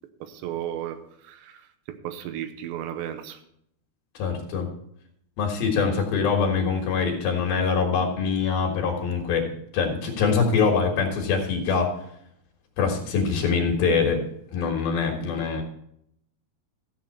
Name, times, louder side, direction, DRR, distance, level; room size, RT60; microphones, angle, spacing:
voice 1, 0.2-1.0 1.2-1.6 1.9-3.4, right 11 dB, 85° right, 9 dB, 3.1 m, -34 dB
voice 2, 4.2-4.7 5.4-11.9 12.8-14.2 14.5-15.6, left 5 dB, 65° left, 2 dB, 3.0 m, -24 dB
14.5 x 7.6 x 4.2 m, 0.71 s
omnidirectional pair, 5.0 m